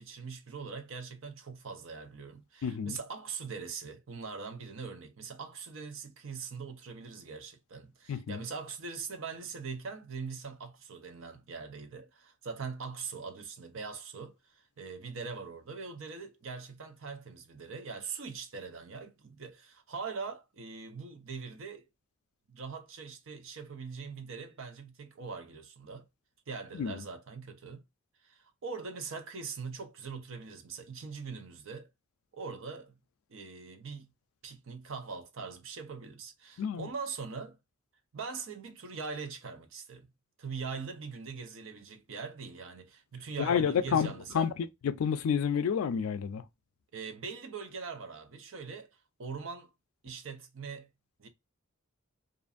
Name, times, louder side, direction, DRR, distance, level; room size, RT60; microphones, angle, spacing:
voice 1, 0.0-21.8 22.5-26.1 26.5-27.8 28.2-31.9 32.3-32.9 33.3-34.1 34.4-37.6 38.1-40.1 40.4-44.5 46.9-48.9 49.2-49.7 50.0-50.9 51.2-51.3, right 5 dB, 65° right, 0.6 m, -42 dB
voice 2, 2.6-3.0 8.1-8.4 26.7-27.0 36.6-36.9 43.4-46.4, left 7 dB, 80° left, 0.4 m, -30 dB
2.5 x 2.5 x 2.3 m
head